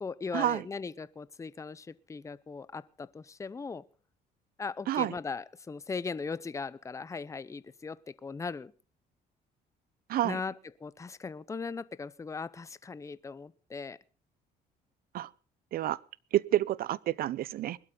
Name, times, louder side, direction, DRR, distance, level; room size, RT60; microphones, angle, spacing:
voice 1, 0.0-3.9 4.6-8.7 10.2-14.0, left 4 dB, 20° left, 0.7 m, -39 dB
voice 2, 16.3-17.8, right 13 dB, 60° right, 0.7 m, -29 dB
21.5 x 12.0 x 3.9 m
cardioid pair, 110°, 17 cm